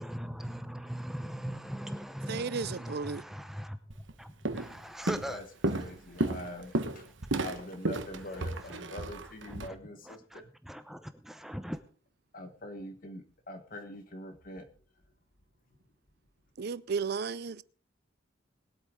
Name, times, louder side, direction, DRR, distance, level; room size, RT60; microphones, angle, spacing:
voice 1, 0.0-3.8 4.2-5.4 8.3-8.8 9.5-9.8 10.0-11.8, equal, ahead, 0.7 m, -40 dB
voice 2, 2.3-3.2 16.6-17.6, right 5 dB, 55° right, 0.5 m, -34 dB
Walk footsteps, 3.9-4.1 4.5-4.8 5.1-9.7, right 2 dB, 70° right, 1.2 m, -33 dB
voice 3, 5.3-7.0 7.3-10.5 12.3-14.6, left 1 dB, 45° left, 1.3 m, -44 dB
21.5 x 8.5 x 3.7 m
head